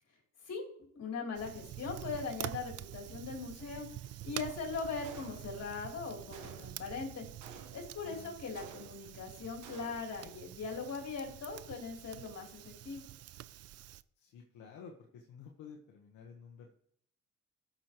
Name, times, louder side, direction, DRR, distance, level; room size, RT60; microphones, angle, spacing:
voice 1, 0.9-3.9 4.2-7.3 7.7-13.0, left 4 dB, 55° left, 0 dB, 3.3 m, -40 dB
Fire, 1.3-14.0, right 13 dB, 55° right, 0.4 m, -47 dB
Gunshot gunfire, 5.0-5.8 6.3-6.9 7.4-8.0 8.6-9.2 9.6-10.2, right 5 dB, 75° right, 1.2 m, -52 dB
voice 2, 8.0-8.3 14.2-16.7, left 6 dB, 80° left, 0 dB, 1.2 m, -52 dB
15.0 x 6.4 x 3.0 m, 0.67 s
cardioid pair, 90°, 30 cm